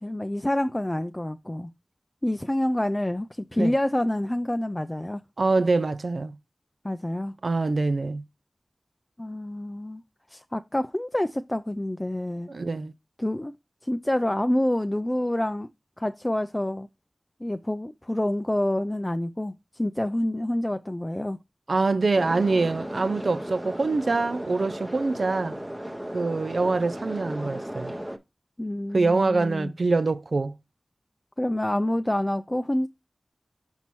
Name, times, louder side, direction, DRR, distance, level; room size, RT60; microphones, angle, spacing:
voice 1, 0.0-1.7 2.2-5.2 6.8-7.3 9.2-10.0 10.3-12.5 13.2-13.5 13.8-15.7 16.0-16.9 17.4-21.4 28.6-29.7 31.4-32.9, left 1 dB, 20° left, 0.3 m, -27 dB
voice 2, 5.4-6.4 7.4-8.2 12.5-12.9 21.7-25.5 26.1-27.9 28.9-30.5, right 3 dB, 75° right, 0.3 m, -24 dB
sound 1, 22.2-28.2, equal, 15° right, 0.8 m, -35 dB
5.9 x 5.4 x 3.0 m
wide cardioid pair, 55°, 0 cm